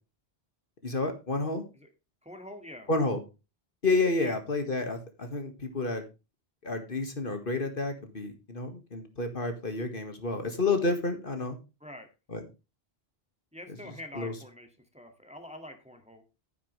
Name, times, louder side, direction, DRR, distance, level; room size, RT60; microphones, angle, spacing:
voice 1, 0.8-1.6 2.9-3.2 3.8-6.0 6.6-11.6 12.3-12.4 14.1-14.3, left 3 dB, 60° left, 7 dB, 2.0 m, -30 dB
voice 2, 2.2-2.9 4.2-4.4 11.8-12.1 13.5-14.7 14.9-16.2, left 1 dB, 5° right, 5 dB, 2.0 m, -45 dB
11.5 x 9.9 x 3.2 m, 0.28 s
omnidirectional pair, 1.0 m